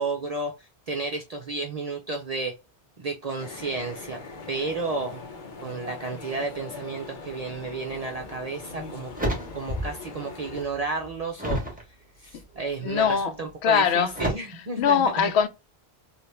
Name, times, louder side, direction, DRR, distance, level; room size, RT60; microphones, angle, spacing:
voice 1, 0.0-2.5 3.0-4.2 4.5-5.2 5.6-9.1 9.5-11.6 12.2-15.3, right 3 dB, 45° right, 0.5 m, -32 dB
sound 1, 3.4-10.7, left 3 dB, 55° left, 0.8 m, -41 dB
sound 2, 8.2-8.3 8.8-10.1 10.4-11.8 12.4-12.9 14.1-14.3, equal, 10° right, 1.1 m, -30 dB
voice 2, 12.8-13.3 13.6-14.1 14.8-15.5, left 7 dB, 90° left, 0.8 m, -21 dB
2.8 x 2.4 x 3.2 m
omnidirectional pair, 1.1 m